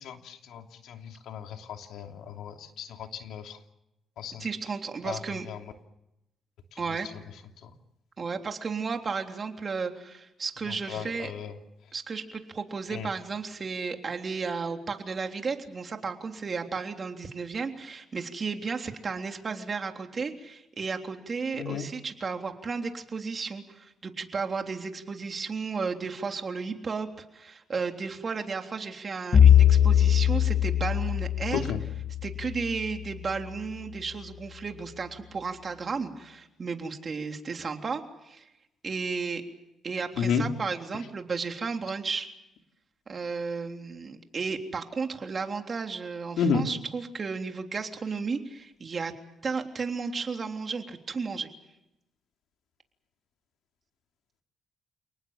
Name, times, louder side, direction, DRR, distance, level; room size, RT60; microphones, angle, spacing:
voice 1, 0.0-3.6 4.2-4.5 5.0-5.2 5.5-5.6 10.9-11.5 12.9-13.1 21.6-21.9 31.5-31.8 40.2-40.4 46.4-46.6, left 6 dB, 80° left, 4 dB, 2.9 m, -32 dB
voice 2, 4.4-5.5 6.8-7.1 8.2-11.3 11.9-31.6 32.2-38.5 38.8-39.4 39.8-42.3 43.1-49.1 49.4-51.5, right 5 dB, 40° right, 4 dB, 3.4 m, -33 dB
Bowed string instrument, 29.3-33.5, left 9 dB, 45° left, 1.9 m, -22 dB
29.0 x 19.5 x 7.5 m, 0.88 s
cardioid pair, 90°, 0 cm